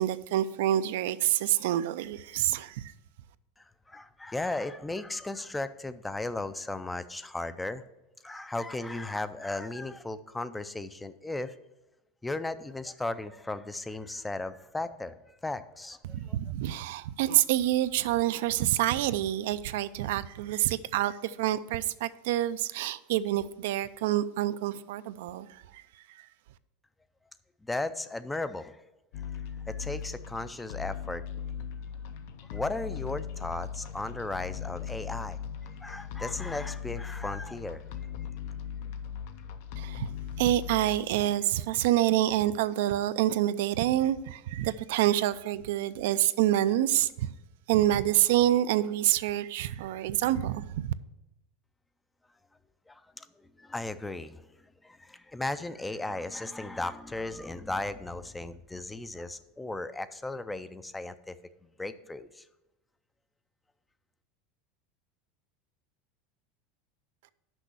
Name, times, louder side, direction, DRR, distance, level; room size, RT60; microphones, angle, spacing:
voice 1, 0.0-2.9 16.0-25.8 26.2-26.3 39.8-40.1 40.4-47.3 47.7-50.9, right 13 dB, 75° right, 14 dB, 0.3 m, -27 dB
voice 2, 3.6-7.8 8.2-11.6 12.2-16.4 27.6-28.8 29.7-31.2 32.5-37.8 52.9-54.5 54.8-61.4 61.6-62.5, left 2 dB, 10° left, 13 dB, 0.4 m, -36 dB
sound 1, 29.1-41.0, left 8 dB, 70° left, 0.6 m, -38 dB
6.2 x 5.4 x 6.8 m, 0.99 s
supercardioid pair, 145°, 0 cm